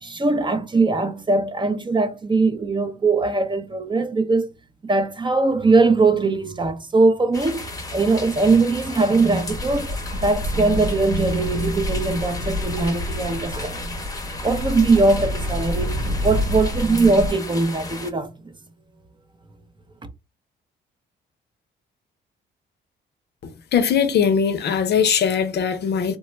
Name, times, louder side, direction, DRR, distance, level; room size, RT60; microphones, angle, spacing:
voice 1, 0.0-4.5 4.9-14.0 14.4-18.3, right 3 dB, 25° right, 0.5 m, -21 dB
sound 1, 7.3-18.1, left 2 dB, 20° left, 0.8 m, -34 dB
sound 2, 9.3-17.3, left 1 dB, 85° right, 1.9 m, -29 dB
voice 2, 23.4-26.2, left 7 dB, 60° left, 0.6 m, -20 dB
3.2 x 2.2 x 3.1 m
cardioid pair, 90°, 20 cm